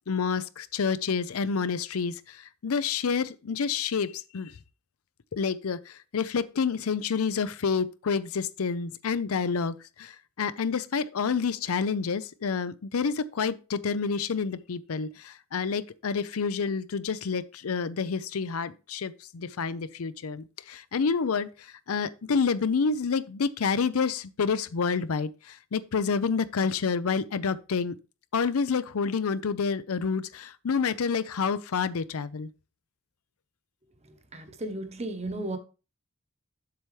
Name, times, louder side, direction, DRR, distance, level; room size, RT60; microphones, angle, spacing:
voice 1, 0.1-4.5 5.3-27.9 28.3-32.5, left 5 dB, 90° left, 0.5 m, -28 dB
voice 2, 34.3-35.6, right 1 dB, 30° right, 1.0 m, -34 dB
7.7 x 6.9 x 3.2 m
head